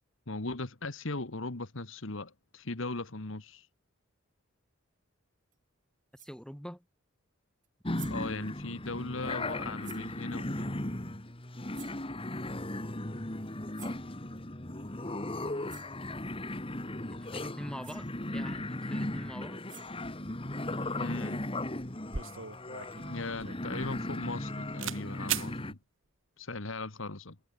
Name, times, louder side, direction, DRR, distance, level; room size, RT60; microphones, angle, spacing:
voice 1, 0.3-3.7 8.1-10.8 21.0-21.4 23.1-25.8 26.4-27.3, left 3 dB, 65° left, 1.7 m, -38 dB
sound 1, 5.5-5.6 6.1-6.4 7.6-7.7 7.9-8.3 9.8-10.1 11.7-12.1 13.7-14.1 15.3-15.4 15.7-16.0 17.5-17.6 17.8-18.1 19.4-20.1, right 13 dB, 40° right, 3.1 m, -52 dB
voice 2, 6.1-6.9 17.0-19.7, equal, 5° left, 7.2 m, -44 dB
sound 2, 7.8-25.7, left 1 dB, 25° left, 2.0 m, -37 dB
sound 3, 22.1-24.5 24.8-25.0 25.3-25.5, right 9 dB, 65° right, 2.8 m, -37 dB
head